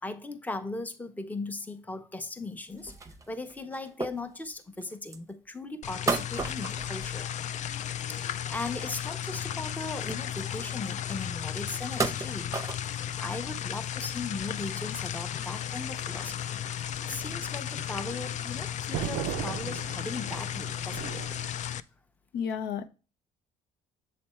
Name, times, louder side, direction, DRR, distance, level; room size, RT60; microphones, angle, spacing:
voice 1, 0.0-7.3 8.1-16.6 17.1-21.2, left 3 dB, 10° left, 0.7 m, -38 dB
sound 1, 2.7-5.3 6.1-7.7 8.0-9.4 9.6-9.7 10.0-10.6 11.1-11.2 11.8-13.2 13.7-13.8 14.1-14.6 15.0-15.1 15.3-15.5 16.4-16.5, right 3 dB, 20° right, 0.7 m, -35 dB
sound 2, 5.8-21.8, left 10 dB, 45° left, 0.4 m, -35 dB
sound 3, 15.8-21.5, right 12 dB, 80° right, 0.4 m, -39 dB
voice 2, 22.3-22.9, left 7 dB, 75° left, 0.7 m, -32 dB
7.5 x 3.4 x 4.2 m
cardioid pair, 110°, 17 cm